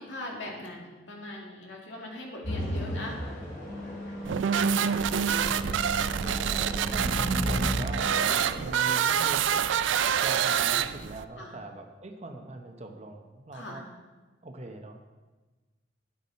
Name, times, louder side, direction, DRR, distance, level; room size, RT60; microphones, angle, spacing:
voice 1, 0.0-3.2 8.2-8.5 11.3-11.6 13.5-13.8, left 1 dB, 80° left, -1 dB, 2.2 m, -40 dB
sound 1, 2.4-8.6, equal, 50° left, 3.4 m, -35 dB
Wind instrument woodwind instrument, 3.6-8.3, right 1 dB, 20° right, 1.3 m, -39 dB
sound 2, 4.2-11.2, right 8 dB, 80° right, 0.4 m, -26 dB
voice 2, 6.9-8.1 8.5-9.6 10.2-13.8 14.4-15.0, right 2 dB, 35° right, 5 dB, 0.8 m, -43 dB
10.0 x 9.2 x 4.2 m, 1.2 s
head